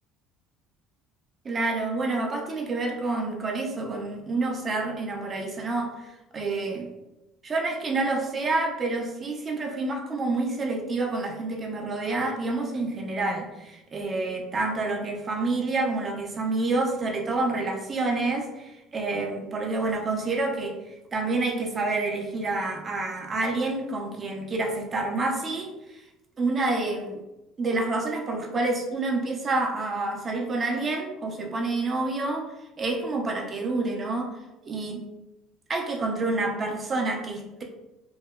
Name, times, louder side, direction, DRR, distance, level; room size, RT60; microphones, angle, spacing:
voice 1, 1.4-6.9 7.4-26.0 26.4-27.2 27.6-35.0 35.7-37.6, right 3 dB, 30° right, 2 dB, 0.4 m, -28 dB
2.7 x 2.1 x 2.2 m, 0.96 s
cardioid pair, 125°, 0 cm